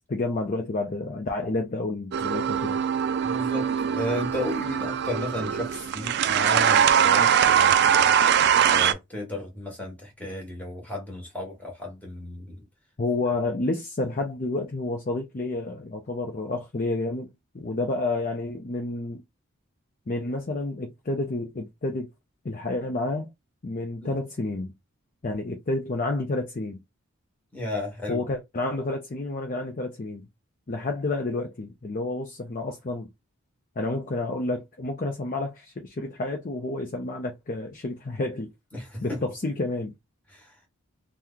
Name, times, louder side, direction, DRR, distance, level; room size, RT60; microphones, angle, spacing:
voice 1, 0.1-2.8 13.0-19.2 20.1-22.1 22.4-23.3 23.6-24.7 25.2-26.8 28.1-30.2 30.7-33.1 33.8-38.5 39.0-39.9, left 2 dB, 40° left, 0.5 m, -30 dB
sound 1, 2.1-8.9, right 8 dB, 50° right, 0.3 m, -22 dB
voice 2, 3.2-8.2 8.7-12.6 24.0-24.1 27.5-28.2 38.7-39.2 40.3-40.5, left 1 dB, 5° left, 1.2 m, -34 dB
3.0 x 2.2 x 3.7 m
head